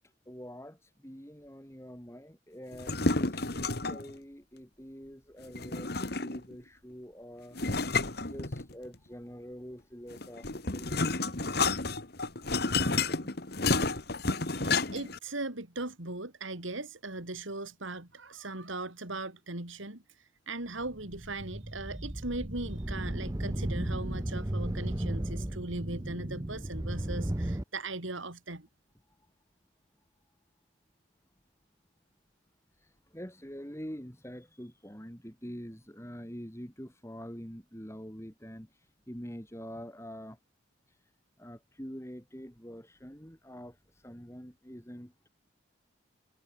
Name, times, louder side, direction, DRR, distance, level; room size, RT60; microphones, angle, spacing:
voice 1, 0.0-7.6 8.1-12.1 12.7-13.3 29.1-29.3 32.7-40.4 40.9-41.1 41.4-45.3, equal, 15° left, 5.1 m, -46 dB
sound 1, 2.7-4.1 5.5-6.5 7.6-8.9 10.1-15.2, left 3 dB, 50° left, 2.0 m, -30 dB
voice 2, 14.6-28.7, right 2 dB, 75° right, 3.5 m, -39 dB
sound 2, 20.8-27.6, right 1 dB, 15° right, 0.7 m, -35 dB
head